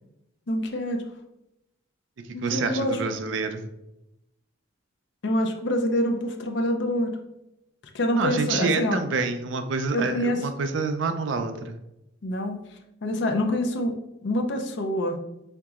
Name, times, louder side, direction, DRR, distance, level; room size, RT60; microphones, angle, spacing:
voice 1, 0.5-1.0 2.3-3.0 5.2-7.1 7.9-9.0 9.9-10.4 12.2-12.6 13.0-13.9 14.2-15.2, left 1 dB, 60° left, 5 dB, 0.6 m, -26 dB
voice 2, 2.4-3.6 8.1-11.8, right 4 dB, 70° right, 8 dB, 0.4 m, -27 dB
4.5 x 3.9 x 2.4 m, 0.87 s
head